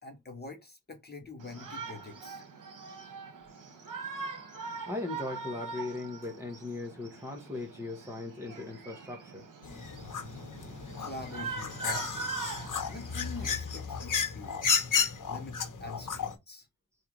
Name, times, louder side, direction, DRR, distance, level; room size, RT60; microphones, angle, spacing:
voice 1, 0.0-2.4 2.8-2.9 11.0-12.3 12.9-14.8 15.3-16.7, left 3 dB, 30° left, 1.0 m, -45 dB
Shout, 1.4-13.5, right 5 dB, 70° right, 1.2 m, -42 dB
voice 2, 4.9-9.4, left 2 dB, 10° right, 1.2 m, -38 dB
sound 1, 9.6-16.3, left 6 dB, 65° left, 1.1 m, -33 dB
3.5 x 2.7 x 4.5 m
wide cardioid pair, 125°, 33 cm